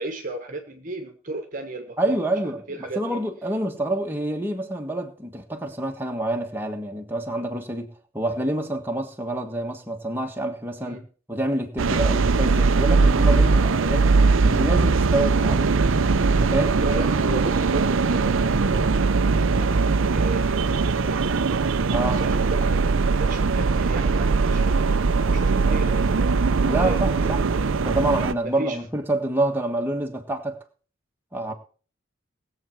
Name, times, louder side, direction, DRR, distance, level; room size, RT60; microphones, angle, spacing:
voice 1, 0.0-2.1 2.7-3.2 10.8-11.1 13.6-13.8 16.8-21.3 21.9-25.0 25.3-26.2 26.7-27.7 28.4-28.8, right 2 dB, 40° right, 1.2 m, -35 dB
voice 2, 2.0-7.9 8.1-11.0 11.3-14.0 14.4-15.8 16.3-16.8 21.9-22.2 26.6-27.4 27.8-30.6 31.3-31.5, right 1 dB, 10° right, 1.5 m, -27 dB
sound 1, 11.8-28.3, right 4 dB, 65° right, 0.6 m, -20 dB
19.5 x 7.7 x 4.6 m
head